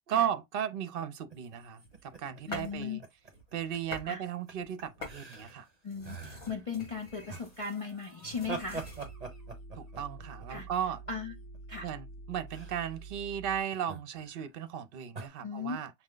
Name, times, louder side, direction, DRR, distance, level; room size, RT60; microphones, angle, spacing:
voice 1, 0.1-3.0 3.5-5.7 9.7-11.0 11.8-15.9, right 9 dB, 55° right, 0.8 m, -35 dB
sound 1, 1.3-4.0 4.2-4.5 4.8-5.7 6.0-6.7 7.3-11.6 12.5-12.9 13.7-14.5 15.1-15.3, right 4 dB, 35° right, 1.1 m, -44 dB
sound 2, 1.4-2.8 3.2-4.1 4.5-9.1, left 2 dB, 70° left, 2.4 m, -47 dB
voice 2, 2.5-3.0 4.0-4.2 5.8-8.9 10.5-10.7 11.1-11.4 11.7-11.9 15.4-15.8, left 5 dB, 40° left, 0.6 m, -37 dB
sound 3, 8.6-13.6, right 3 dB, 55° left, 1.0 m, -48 dB
6.1 x 2.1 x 3.8 m
omnidirectional pair, 1.2 m